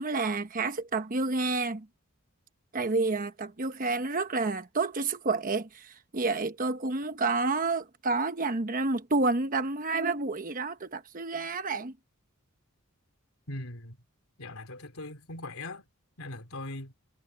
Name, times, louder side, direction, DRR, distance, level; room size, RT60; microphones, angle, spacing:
voice 1, 0.0-1.9 2.7-11.9, right 3 dB, 40° right, 1.0 m, -29 dB
voice 2, 13.5-14.0 14.4-15.8 16.2-16.9, left 2 dB, 80° left, 3.5 m, -40 dB
head